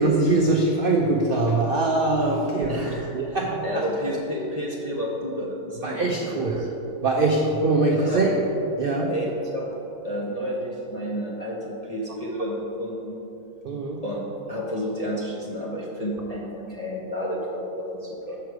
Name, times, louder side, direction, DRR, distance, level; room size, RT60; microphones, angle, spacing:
voice 1, 0.0-2.8 3.1-3.7 5.8-6.5 7.0-8.3 8.8-9.1 13.6-14.0, right 2 dB, 60° right, 0 dB, 0.5 m, -22 dB
voice 2, 2.7-6.7 7.9-8.2 9.1-9.7 10.0-13.2 14.0-18.4, equal, 35° left, -5 dB, 0.7 m, -31 dB
6.4 x 5.7 x 4.6 m, 2.9 s
omnidirectional pair, 1.7 m